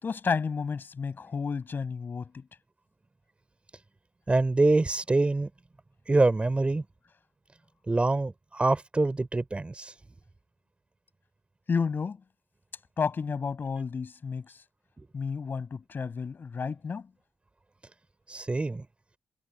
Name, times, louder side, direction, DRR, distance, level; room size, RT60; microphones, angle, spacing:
voice 1, 0.0-2.5 11.7-12.2 13.0-14.6 15.1-17.1, left 5 dB, 50° left, 6.8 m, -31 dB
voice 2, 4.3-5.5 6.1-6.8 7.9-9.9 18.3-18.8, right 2 dB, 25° right, 3.3 m, -25 dB
hypercardioid pair, 45°, 4 cm